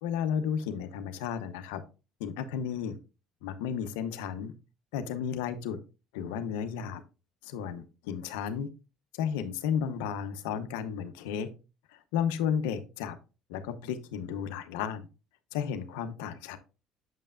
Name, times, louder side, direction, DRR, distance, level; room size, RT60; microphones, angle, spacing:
voice 1, 0.0-1.8 2.2-3.0 3.4-4.5 4.9-5.8 6.1-7.0 7.4-8.7 9.1-11.5 11.9-13.2 13.5-15.1 15.5-16.6, left 8 dB, 90° left, 10 dB, 0.7 m, -33 dB
7.5 x 5.5 x 2.4 m, 0.31 s
supercardioid pair, 100°, 0 cm